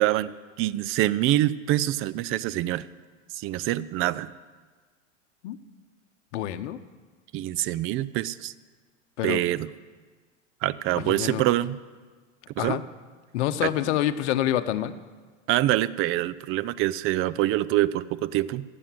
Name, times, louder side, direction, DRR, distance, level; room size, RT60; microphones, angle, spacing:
voice 1, 0.0-2.9 3.3-4.3 7.3-8.5 9.2-9.7 10.6-11.8 12.6-12.8 13.6-13.7 15.5-18.6, right 15 dB, 35° right, 17 dB, 0.5 m, -25 dB
voice 2, 6.3-6.8 9.2-9.4 10.9-11.4 12.6-12.8 13.3-14.9, left 12 dB, 65° left, 10 dB, 1.0 m, -27 dB
12.5 x 7.9 x 9.2 m, 1.4 s
hypercardioid pair, 100°, 37 cm